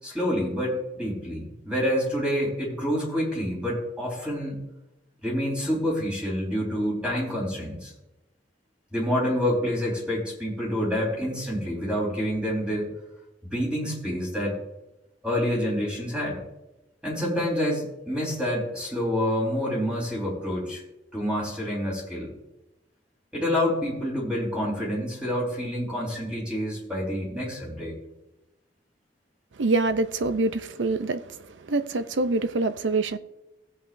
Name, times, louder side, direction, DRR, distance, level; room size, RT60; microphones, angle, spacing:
voice 1, 0.0-4.6 5.2-7.9 8.9-12.9 13.5-14.5 15.2-16.4 17.0-20.8 21.1-22.3 23.3-27.9, equal, 5° right, 4.1 m, -27 dB
voice 2, 29.6-31.2 31.7-33.2, right 3 dB, 90° right, 0.6 m, -25 dB
17.0 x 8.3 x 2.6 m
head